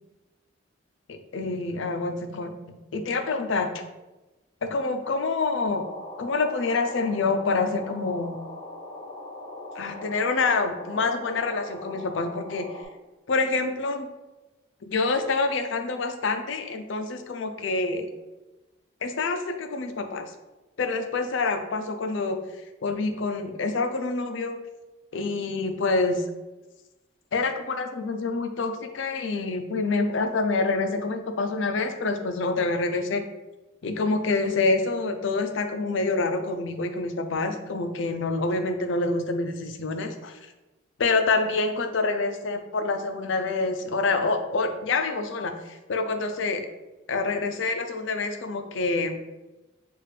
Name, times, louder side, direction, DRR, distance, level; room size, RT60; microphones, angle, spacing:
voice 1, 1.1-3.8 4.6-5.9 6.2-8.4 9.8-12.7 13.3-14.1 14.8-18.1 19.0-20.3 20.8-22.4 22.8-24.6 25.1-26.2 27.3-33.2 33.8-40.4 41.0-46.6 47.1-49.2, left 3 dB, 70° left, 7 dB, 0.5 m, -27 dB
sound 1, 5.6-12.8, left 2 dB, 30° left, 0.8 m, -40 dB
6.5 x 2.4 x 3.3 m, 1.1 s
head